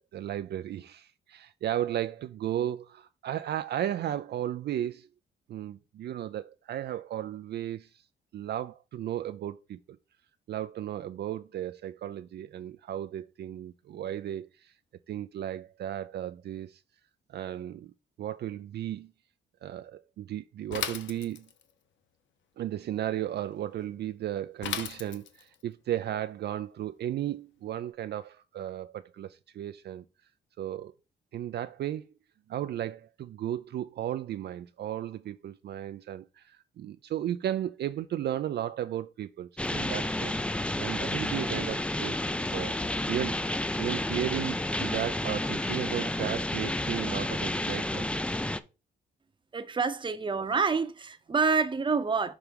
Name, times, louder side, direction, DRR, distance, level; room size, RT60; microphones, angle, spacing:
voice 1, 0.0-5.1 5.5-8.0 8.3-9.8 10.5-14.7 15.1-16.8 17.3-17.9 18.2-19.1 19.6-21.5 22.6-30.0 30.6-30.9 31.3-32.1 32.5-40.3 40.8-42.2 42.5-42.8 43.1-48.1, right 11 dB, 55° right, 0.4 m, -35 dB
Bicycle / Mechanisms, 20.7-21.7 24.6-25.5, left 8 dB, 70° left, 0.8 m, -35 dB
sound 1, 39.6-48.6, left 1 dB, 5° left, 0.4 m, -31 dB
voice 2, 49.5-52.3, right 5 dB, 25° right, 0.8 m, -27 dB
6.0 x 3.3 x 5.2 m
cardioid pair, 90°, 20 cm